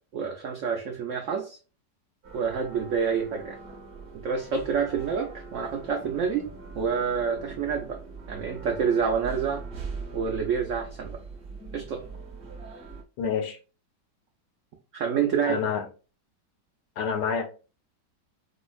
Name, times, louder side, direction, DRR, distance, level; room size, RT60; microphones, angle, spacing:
voice 1, 0.1-1.6 2.3-3.6 4.2-6.5 6.7-8.0 8.3-9.6 10.1-11.2 11.7-12.1 14.9-15.6, right 6 dB, 80° right, 0.6 m, -28 dB
sound 1, 2.2-13.0, right 4 dB, 45° right, 0.9 m, -42 dB
voice 2, 13.2-13.6 15.5-15.8 17.0-17.5, left 6 dB, 80° left, 1.4 m, -27 dB
5.1 x 2.1 x 2.3 m
omnidirectional pair, 1.9 m